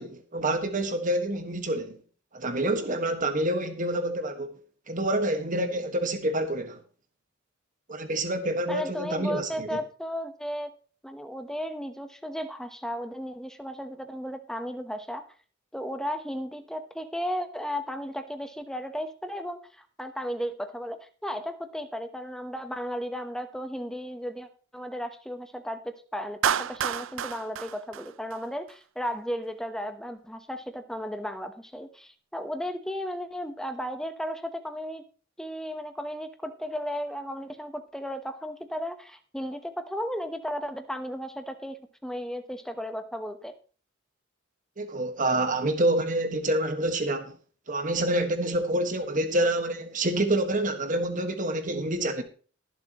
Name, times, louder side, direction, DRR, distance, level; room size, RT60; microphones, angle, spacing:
voice 1, 0.0-2.0 2.3-4.6 4.9-6.8 7.9-9.8 44.8-47.4 47.7-52.2, right 1 dB, 40° right, 1.5 m, -27 dB
voice 2, 8.7-10.7 11.0-15.2 15.7-35.0 35.4-43.5, equal, 5° left, 0.9 m, -35 dB
Clapping, 26.4-28.7, right 9 dB, 75° right, 0.5 m, -30 dB
22.0 x 7.4 x 3.0 m
head